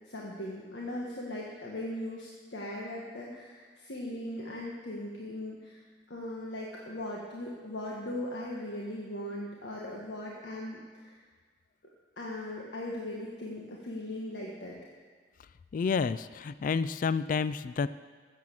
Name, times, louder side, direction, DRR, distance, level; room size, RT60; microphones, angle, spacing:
voice 1, 0.1-5.8 6.1-11.2 12.2-14.8, left 1 dB, 75° left, -3 dB, 1.5 m, -39 dB
voice 2, 15.7-17.9, left 5 dB, 50° left, 15 dB, 0.3 m, -29 dB
13.0 x 7.7 x 7.6 m, 1.5 s
head